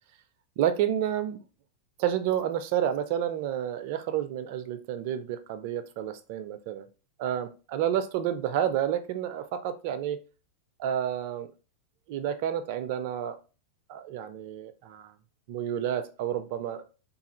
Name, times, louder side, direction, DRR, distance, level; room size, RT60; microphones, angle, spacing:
voice 1, 0.6-1.4 2.0-6.9 7.2-10.2 10.8-11.5 12.1-13.4 13.9-15.1 15.5-16.8, right 10 dB, 50° right, 10 dB, 0.4 m, -30 dB
3.2 x 2.3 x 3.0 m, 0.35 s
figure-of-eight pair, 90°, 0 cm